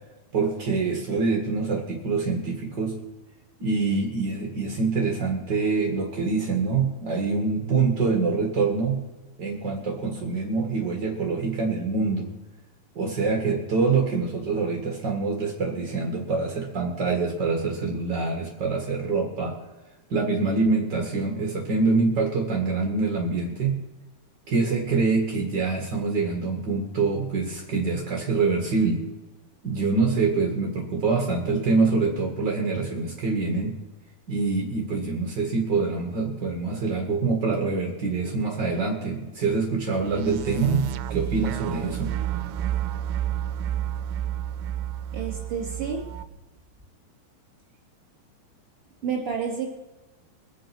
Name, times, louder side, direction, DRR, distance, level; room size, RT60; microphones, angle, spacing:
voice 1, 0.3-2.9 3.6-9.0 9.4-12.3 12.9-19.5 20.1-23.8 24.5-29.0 29.6-33.7 34.3-42.1, right 4 dB, 55° right, 1 dB, 1.2 m, -25 dB
sound 1, 40.0-46.2, right 11 dB, 80° right, 2.3 m, -30 dB
voice 2, 45.1-46.0 49.0-49.8, right 6 dB, 15° right, -1 dB, 2.9 m, -30 dB
22.5 x 7.7 x 6.0 m, 1.1 s
omnidirectional pair, 4.8 m